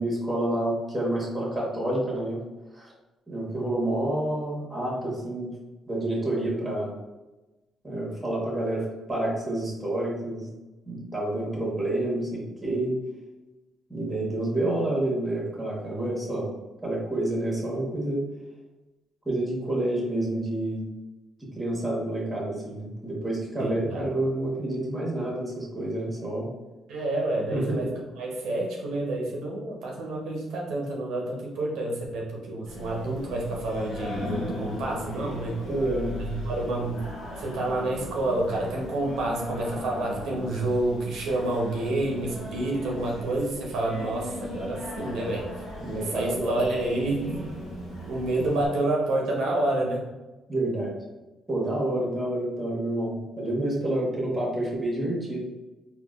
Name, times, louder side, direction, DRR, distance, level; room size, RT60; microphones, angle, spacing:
voice 1, 0.0-2.4 2.7-2.9 3.3-5.5 5.9-6.9 7.8-10.5 10.9-12.9 13.9-16.5 16.8-18.2 19.2-20.9 21.5-26.5 27.5-27.9 35.7-36.1 45.8-46.6 48.4-48.5 50.5-50.9 51.5-55.5, right 1 dB, 10° right, -4 dB, 1.2 m, -28 dB
voice 2, 23.6-24.1 26.9-27.9 28.1-35.6 36.2-37.1 37.4-45.5 46.1-47.5 48.1-50.0, right 2 dB, 80° right, -1 dB, 0.6 m, -29 dB
Singing, 32.7-48.7, left 1 dB, 75° left, 0.8 m, -38 dB
3.7 x 2.2 x 2.4 m, 1.1 s
cardioid pair, 90°, 0 cm